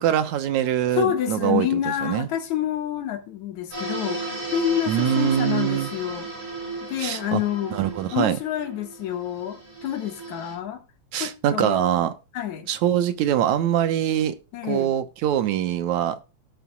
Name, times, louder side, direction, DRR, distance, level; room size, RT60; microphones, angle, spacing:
voice 1, 0.0-2.3 4.9-5.9 7.0-7.4 7.7-8.4 11.1-12.1 12.7-14.4 14.6-16.2, right 10 dB, 75° right, 2.4 m, -23 dB
voice 2, 1.0-6.3 6.9-7.8 8.1-10.8 11.2-11.9 12.3-12.7 14.5-14.9, left 11 dB, 75° left, 3.0 m, -28 dB
sound 1, 3.7-10.5, right 3 dB, 50° right, 7.7 m, -35 dB
17.5 x 7.1 x 2.3 m
omnidirectional pair, 3.3 m